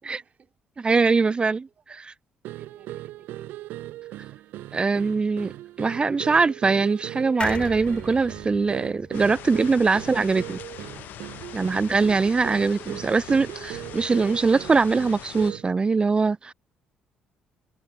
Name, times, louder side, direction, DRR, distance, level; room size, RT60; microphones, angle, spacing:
voice 1, 0.0-0.5 1.2-2.0 2.6-3.6 9.7-9.8 11.5-11.6 12.3-12.7, right 6 dB, 45° right, 3.9 m, -53 dB
voice 2, 0.8-1.6 4.7-5.5 5.8-10.6 11.5-16.5, right 4 dB, 30° right, 0.4 m, -22 dB
sound 1, 2.4-15.8, right 16 dB, 65° right, 0.6 m, -39 dB
sound 2, 7.4-10.9 11.3-11.4 11.6-11.7, left 4 dB, 30° left, 2.6 m, -38 dB
sound 3, 9.1-15.5, left 12 dB, 60° left, 0.9 m, -42 dB
hypercardioid pair, 50°, 4 cm